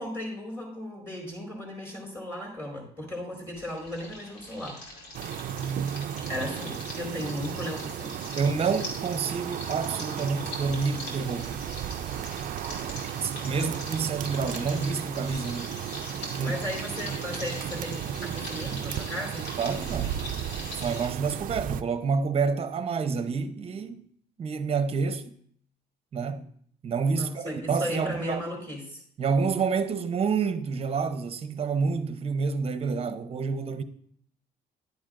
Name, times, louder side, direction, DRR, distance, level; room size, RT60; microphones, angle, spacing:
voice 1, 0.0-4.8 6.3-8.2 13.5-13.7 16.4-19.5 27.1-29.0, left 1 dB, 15° left, 4.3 m, -36 dB
sound 1, 3.5-21.1, left 2 dB, 75° left, 2.6 m, -42 dB
sound 2, 5.1-21.8, right 10 dB, 55° right, 0.4 m, -34 dB
voice 2, 8.4-11.6 13.2-15.8 16.4-16.6 19.6-20.2 20.7-24.0 24.4-25.3 26.1-26.5 26.8-28.5 29.2-33.8, right 5 dB, 35° right, 0.8 m, -28 dB
11.0 x 8.8 x 2.5 m
cardioid pair, 110°, 17 cm